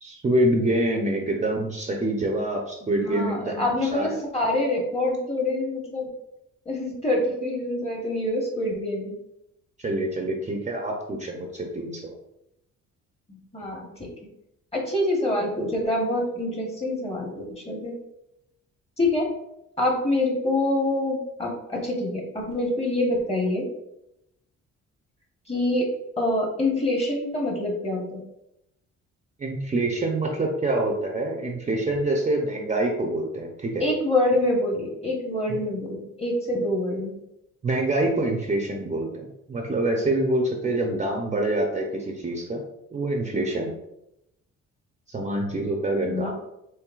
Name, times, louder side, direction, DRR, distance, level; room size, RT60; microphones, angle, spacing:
voice 1, 0.0-4.2 9.8-12.1 29.4-33.8 37.6-42.6 42.9-43.7 45.1-46.3, right 1 dB, 25° right, 1 dB, 0.6 m, -26 dB
voice 2, 2.8-6.1 6.6-9.2 13.3-14.1 14.7-17.9 19.0-19.3 19.8-23.7 25.5-28.2 33.8-37.2 46.0-46.3, left 1 dB, 20° left, 0 dB, 1.1 m, -26 dB
4.5 x 3.2 x 2.4 m, 0.85 s
cardioid pair, 90°, 30 cm